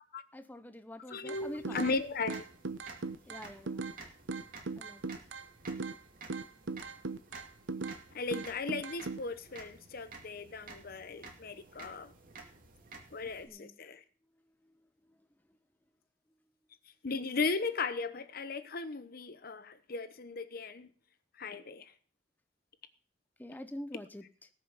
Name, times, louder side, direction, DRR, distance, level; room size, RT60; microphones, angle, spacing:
voice 1, 0.3-1.8 3.3-3.9 4.8-5.0 13.5-13.8 14.6-14.7 15.1-15.2 23.4-24.5, left 1 dB, 10° left, 10 dB, 0.6 m, -46 dB
voice 2, 1.1-2.5 8.1-12.1 13.1-14.0 17.0-20.9 21.4-21.9, left 4 dB, 55° left, 13 dB, 0.9 m, -37 dB
sound 1, 1.3-13.5, right 3 dB, 50° right, 2.3 m, -53 dB
sound 2, 1.3-2.0 2.3-4.0 4.3-6.0 6.3-8.0 8.3-9.2, right 4 dB, 80° right, 0.9 m, -38 dB
18.5 x 6.5 x 5.6 m, 0.42 s
head